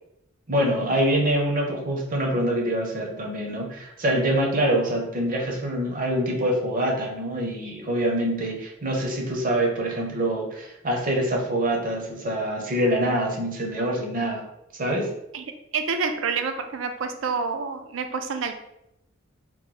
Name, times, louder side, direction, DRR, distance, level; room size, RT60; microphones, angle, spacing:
voice 1, 0.5-14.4 14.8-15.1, right 1 dB, 45° right, 0 dB, 0.8 m, -25 dB
voice 2, 15.7-18.5, right 5 dB, 70° right, 6 dB, 0.4 m, -28 dB
3.0 x 2.2 x 3.8 m, 0.81 s
head